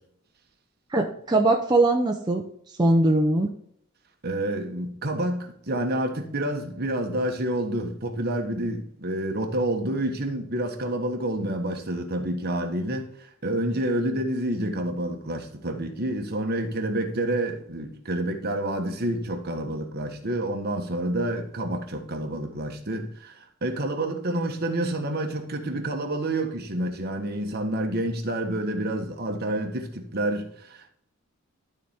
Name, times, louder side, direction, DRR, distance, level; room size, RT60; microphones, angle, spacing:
voice 1, 0.9-2.4 2.8-3.5, right 2 dB, 20° right, 0.7 m, -21 dB
voice 2, 4.2-30.9, right 1 dB, 50° right, 1.3 m, -28 dB
12.5 x 4.2 x 3.6 m
head